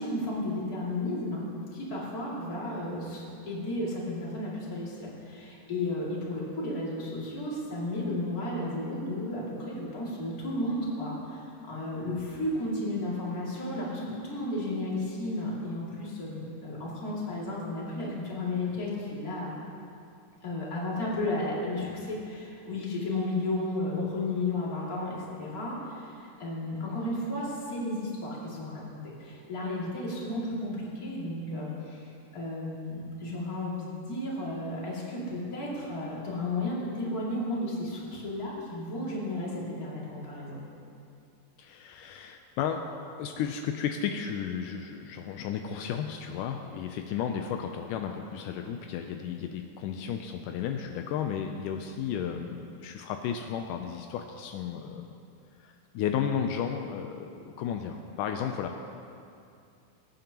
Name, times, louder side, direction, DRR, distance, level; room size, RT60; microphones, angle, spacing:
voice 1, 0.0-1.4 1.7-19.5 20.4-40.6, left 1 dB, 30° left, -6 dB, 2.5 m, -33 dB
voice 2, 41.6-42.8 43.2-55.1 55.6-58.8, left 8 dB, 80° left, 5 dB, 2.1 m, -33 dB
21.5 x 9.0 x 2.9 m, 2.5 s
omnidirectional pair, 3.7 m